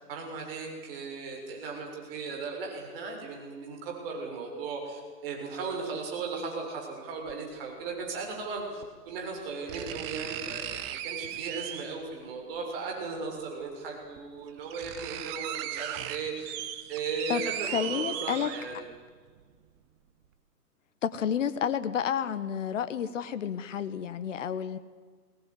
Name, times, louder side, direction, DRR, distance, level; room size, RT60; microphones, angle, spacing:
voice 1, 0.1-16.5 16.9-18.8, right 4 dB, 35° right, 1 dB, 6.9 m, -37 dB
sound 1, 7.3-7.4 8.8-8.9 9.7-12.1 13.4-13.5 14.2-14.3 14.5-18.9 19.4-19.5, right 11 dB, 20° right, 1.0 m, -37 dB
voice 2, 17.3-18.5 21.0-24.8, left 8 dB, 50° left, 12 dB, 1.5 m, -30 dB
22.5 x 19.5 x 9.9 m, 1.5 s
hypercardioid pair, 140°, 48 cm